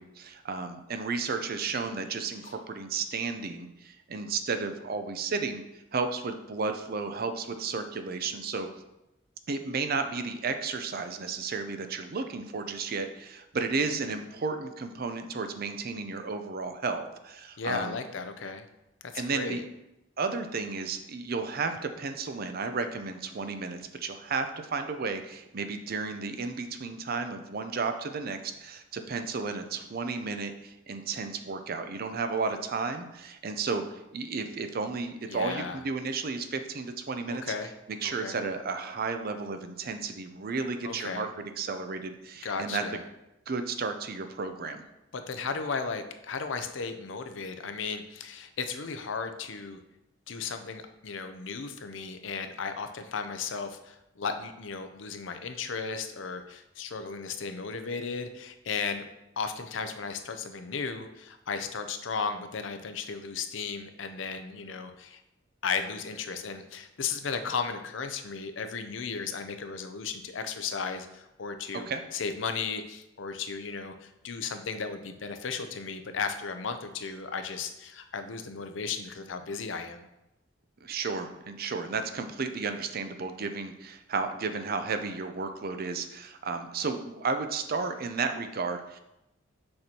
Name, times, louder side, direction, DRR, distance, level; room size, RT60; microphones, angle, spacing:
voice 1, 0.0-5.6 5.9-8.7 9.5-17.9 19.1-19.6 20.2-37.5 37.9-42.8 43.5-44.8 71.9-72.0 80.8-89.0, right 4 dB, 50° right, 8 dB, 0.5 m, -33 dB
voice 2, 17.6-18.7 19.1-19.6 35.3-35.8 37.3-37.7 38.0-38.4 40.8-41.3 42.4-43.0 45.1-49.8 50.3-59.0 59.4-65.2 65.6-80.1, left 5 dB, 80° left, 8 dB, 0.6 m, -35 dB
6.4 x 6.0 x 2.9 m, 0.90 s
head